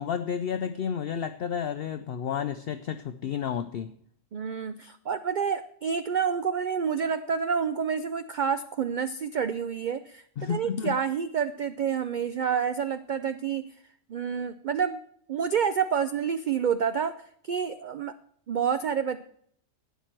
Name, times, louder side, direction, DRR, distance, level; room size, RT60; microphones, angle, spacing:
voice 1, 0.0-3.9 10.4-11.0, left 7 dB, 60° left, 10 dB, 0.6 m, -31 dB
voice 2, 4.3-13.7 14.1-15.0 15.3-17.1 17.4-18.1 18.5-19.2, right 7 dB, 75° right, 11 dB, 0.4 m, -28 dB
12.0 x 9.4 x 4.5 m, 0.65 s
omnidirectional pair, 1.4 m